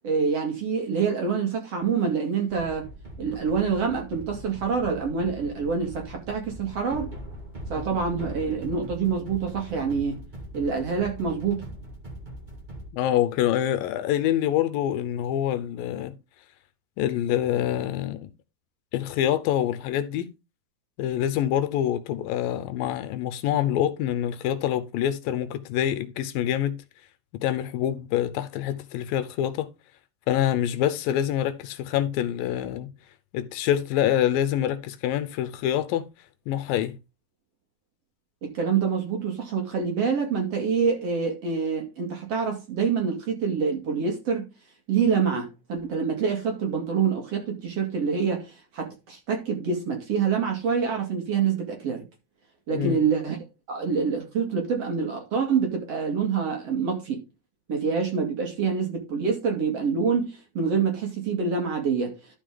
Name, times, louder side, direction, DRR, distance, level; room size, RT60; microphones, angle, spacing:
voice 1, 0.0-2.9 3.2-7.1 7.7-10.2 10.5-11.6 38.4-44.5 44.9-52.0 52.7-53.4 53.7-57.2 57.7-62.1, right 6 dB, 50° right, 2.7 m, -26 dB
sound 1, 2.5-12.9, right 1 dB, 30° right, 0.8 m, -41 dB
voice 2, 12.9-16.2 17.0-18.3 18.9-20.3 21.0-26.8 27.4-29.7 30.3-32.9 33.3-36.0 36.5-37.0 52.7-53.0, left 11 dB, 80° left, 2.4 m, -26 dB
12.5 x 5.1 x 3.8 m
omnidirectional pair, 4.2 m